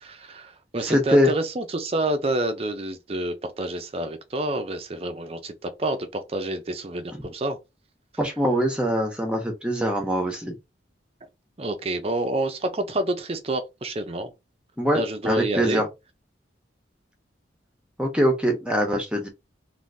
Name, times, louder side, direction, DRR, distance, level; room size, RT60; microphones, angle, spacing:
voice 1, 0.0-7.6 11.6-14.3 14.9-15.8, right 1 dB, 30° right, 0.5 m, -28 dB
voice 2, 0.8-1.3 7.2-7.3 8.2-10.5 14.8-15.9 18.0-19.3, equal, 5° right, 0.9 m, -23 dB
3.6 x 2.6 x 2.6 m
head